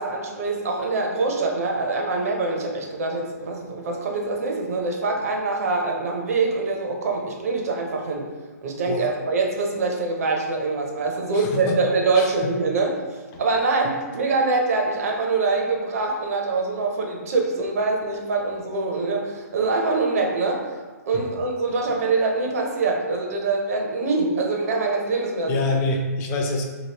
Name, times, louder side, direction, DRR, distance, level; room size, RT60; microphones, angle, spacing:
voice 1, 0.0-8.3 8.6-12.9 13.4-20.6 21.1-25.6, right 3 dB, 60° right, 1 dB, 0.7 m, -24 dB
voice 2, 11.3-11.8 12.1-12.3 13.3-13.4 21.1-21.2 25.5-26.6, left 2 dB, 25° left, 1 dB, 0.4 m, -26 dB
2.9 x 2.7 x 2.9 m, 1.3 s
hypercardioid pair, 135°, 9 cm